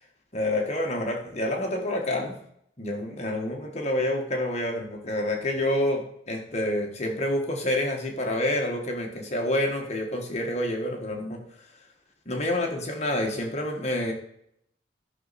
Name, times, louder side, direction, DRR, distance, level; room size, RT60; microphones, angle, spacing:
voice 1, 0.3-2.4 2.8-11.4 12.2-14.1, left 1 dB, 35° left, 1 dB, 1.5 m, -28 dB
13.0 x 6.3 x 4.2 m, 0.72 s
head